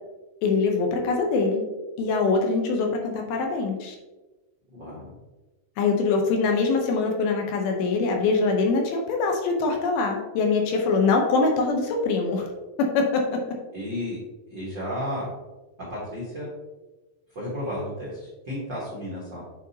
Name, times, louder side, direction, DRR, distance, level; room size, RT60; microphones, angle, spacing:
voice 1, 0.4-1.7 2.0-4.0 5.8-12.5 12.8-13.4, left 4 dB, 80° left, 2 dB, 2.6 m, -23 dB
voice 2, 4.7-5.1 13.7-14.2 14.5-15.3 15.9-16.5 17.3-19.4, left 1 dB, 70° right, -6 dB, 1.1 m, -33 dB
8.4 x 4.3 x 2.8 m, 1.2 s
omnidirectional pair, 4.7 m